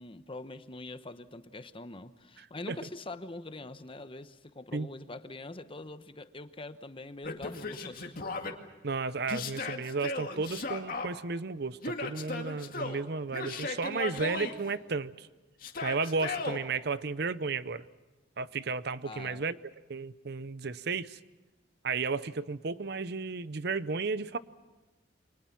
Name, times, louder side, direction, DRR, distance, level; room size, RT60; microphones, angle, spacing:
voice 1, 0.0-8.1 19.0-19.5, left 2 dB, 30° left, 11 dB, 1.0 m, -44 dB
Yell, 7.2-8.5 9.3-11.1 11.8-13.0 13.3-14.6 15.6-16.6, left 3 dB, 55° left, 2.3 m, -36 dB
voice 2, 8.8-15.3 15.8-17.8 18.4-19.6 19.9-21.2 21.8-24.4, right 4 dB, 65° right, 15 dB, 0.8 m, -33 dB
29.0 x 24.5 x 5.9 m, 1.2 s
head